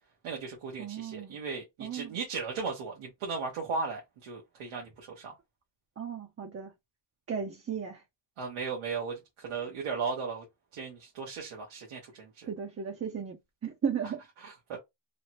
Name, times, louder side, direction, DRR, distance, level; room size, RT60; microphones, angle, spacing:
voice 1, 0.2-5.3 8.4-10.4 10.7-12.5 14.4-14.8, right 5 dB, 85° right, 1.2 m, -36 dB
voice 2, 0.8-1.4 1.8-2.2 6.0-6.7 7.3-8.0 12.5-14.2, right 7 dB, 30° right, 0.6 m, -35 dB
3.3 x 2.0 x 2.9 m
cardioid pair, 90°, 48 cm